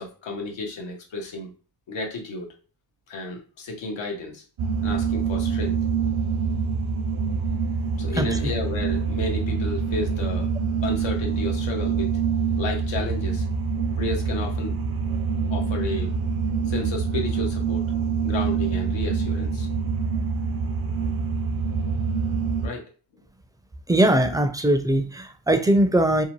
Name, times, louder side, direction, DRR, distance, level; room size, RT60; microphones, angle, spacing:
voice 1, 0.0-1.5 1.9-2.5 3.1-4.4 4.8-5.8 8.0-10.5 10.8-12.1 12.6-13.5 14.0-14.8 15.5-16.1 16.7-17.9 18.2-19.7 22.6-22.9, left 3 dB, 90° left, 0.8 m, -32 dB
sound 1, 4.6-22.7, right 5 dB, 55° right, 0.6 m, -25 dB
voice 2, 23.9-26.2, right 1 dB, 10° right, 0.4 m, -20 dB
2.7 x 2.1 x 2.9 m
cardioid pair, 50°, 44 cm